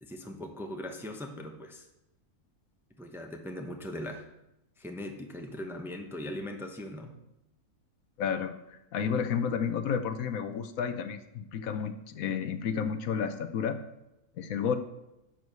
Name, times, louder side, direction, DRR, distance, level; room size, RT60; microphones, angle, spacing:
voice 1, 0.0-1.9 3.0-4.2 4.8-7.1, left 1 dB, ahead, 3 dB, 0.8 m, -40 dB
voice 2, 8.2-13.8 14.4-14.8, left 7 dB, 70° left, 9 dB, 1.1 m, -31 dB
10.5 x 4.7 x 6.8 m, 0.90 s
omnidirectional pair, 1.6 m